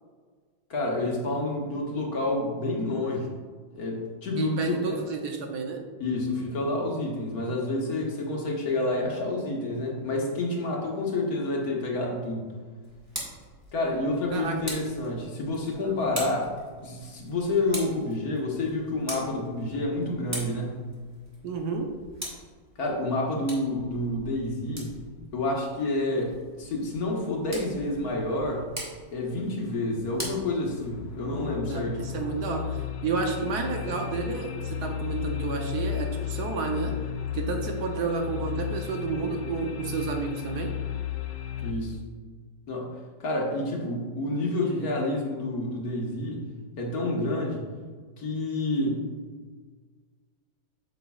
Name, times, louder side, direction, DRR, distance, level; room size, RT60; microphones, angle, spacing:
voice 1, 0.7-3.3 3.7-5.0 6.0-12.5 13.7-16.5 16.8-20.8 22.8-24.9 25.3-28.6 29.1-32.1 33.9-34.0 41.6-42.0 42.7-46.5 46.8-47.6 48.2-49.1, left 2 dB, 55° left, -1 dB, 1.6 m, -29 dB
voice 2, 4.4-5.8 14.3-14.6 15.8-16.0 21.4-21.9 31.6-37.0 37.3-40.7, right 4 dB, 65° right, 3 dB, 1.2 m, -31 dB
Tick, 12.8-31.3, equal, 10° right, 1.7 m, -43 dB
sound 1, 30.4-41.7, left 10 dB, 75° left, 1.1 m, -34 dB
8.3 x 6.8 x 2.3 m, 1.5 s
omnidirectional pair, 2.0 m